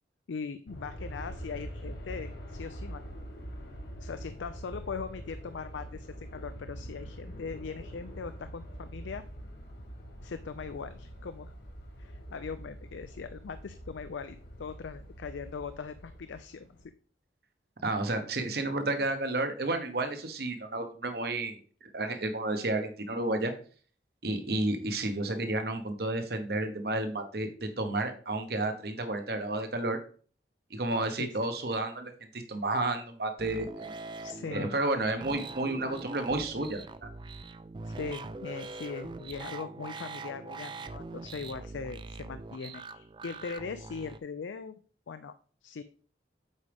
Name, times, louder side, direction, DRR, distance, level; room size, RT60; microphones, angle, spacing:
voice 1, 0.3-3.0 4.0-9.2 10.2-11.5 12.0-16.7 31.2-31.3 34.2-34.7 37.8-44.7 45.1-45.3 45.6-45.8, left 5 dB, 85° left, 11 dB, 0.4 m, -40 dB
Aircraft, 0.7-16.8, equal, 70° left, 2.0 m, -44 dB
voice 2, 17.8-23.5 24.2-30.0 30.7-33.9 34.5-37.1, right 2 dB, 55° right, 7 dB, 1.1 m, -31 dB
sound 1, 33.4-44.2, right 3 dB, 25° right, 0.3 m, -43 dB
8.2 x 5.0 x 3.4 m, 0.42 s
head